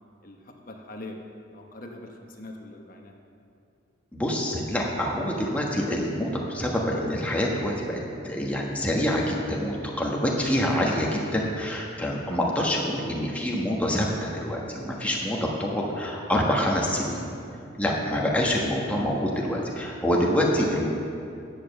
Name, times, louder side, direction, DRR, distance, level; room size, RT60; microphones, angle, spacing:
voice 1, 0.7-1.2 1.5-3.1, left 2 dB, 45° left, 2 dB, 1.1 m, -42 dB
voice 2, 4.1-8.0 8.2-17.3 17.8-20.9, equal, 5° left, -2 dB, 1.3 m, -26 dB
10.0 x 6.8 x 6.9 m, 2.6 s
head